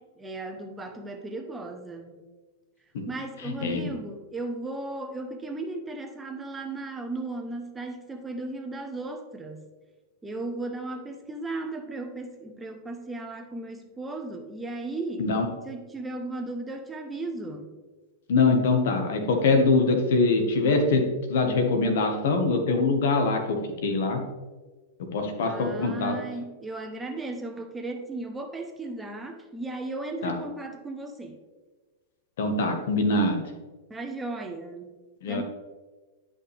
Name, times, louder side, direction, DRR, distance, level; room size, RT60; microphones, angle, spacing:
voice 1, 0.0-2.2 3.1-9.6 10.2-15.3 15.6-17.7 25.4-31.4 33.9-34.9 35.3-35.4, right 2 dB, 10° right, 4 dB, 0.9 m, -36 dB
voice 2, 18.3-21.0 21.3-24.2 25.1-26.2 30.2-30.3 32.4-33.4 35.2-35.4, left 3 dB, 75° left, 4 dB, 1.5 m, -23 dB
10.5 x 5.5 x 3.5 m, 1.3 s
hypercardioid pair, 125°, 0 cm